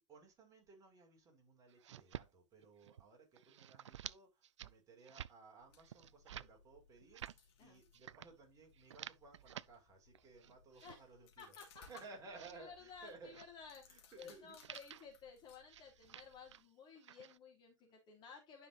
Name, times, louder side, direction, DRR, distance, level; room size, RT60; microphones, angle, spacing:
voice 1, 0.0-11.5 11.9-13.4 13.9-14.6, right 3 dB, 20° right, 5.2 m, -59 dB
sound 1, 1.7-2.3 2.6-3.1 3.4-4.2 4.4-4.7 5.0-5.3 5.8-6.5 7.0-7.4 7.9-8.3 8.7-9.7 10.1-11.0 11.5-12.5 13.3-13.5 14.2-14.3 14.6-15.1 15.7-16.7 16.9-17.4, right 11 dB, 65° right, 0.5 m, -52 dB
sound 2, 5.6-16.7, left 6 dB, 50° left, 2.9 m, -67 dB
voice 2, 11.4-11.8 12.5-18.7, left 6 dB, 30° left, 3.4 m, -56 dB
12.0 x 5.7 x 2.5 m
hypercardioid pair, 115°, 16 cm